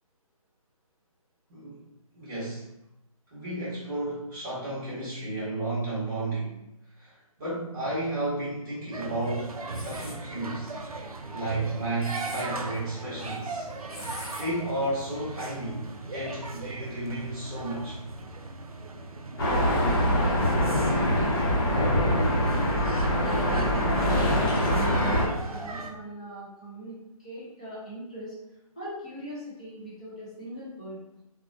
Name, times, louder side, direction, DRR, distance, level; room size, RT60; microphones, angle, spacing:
voice 1, 2.1-2.7 3.3-6.5 7.0-10.7 11.3-13.7 14.4-18.0, right 2 dB, 25° right, -12 dB, 0.8 m, -32 dB
sound 1, 8.9-25.9, right 2 dB, 70° right, 0.4 m, -38 dB
sound 2, 9.7-10.2 11.8-12.4 13.9-14.5, left 1 dB, 75° left, 0.7 m, -43 dB
sound 3, 19.4-25.3, equal, 40° left, 0.8 m, -24 dB
voice 2, 19.6-21.8 23.1-28.3 28.8-31.0, equal, 10° left, -9 dB, 0.4 m, -41 dB
2.7 x 2.1 x 2.5 m, 0.85 s
figure-of-eight pair, 145°, 19 cm